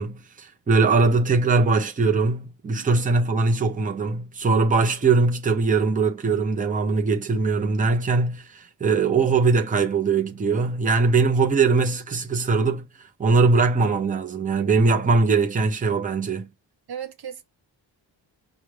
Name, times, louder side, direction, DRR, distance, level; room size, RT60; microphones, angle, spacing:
voice 1, 0.0-12.9 13.2-16.5, right 4 dB, 20° right, 0.5 m, -21 dB
voice 2, 2.7-3.0 16.9-17.4, right 8 dB, 55° right, 0.8 m, -36 dB
6.0 x 2.3 x 3.1 m
wide cardioid pair, 165°, 45 cm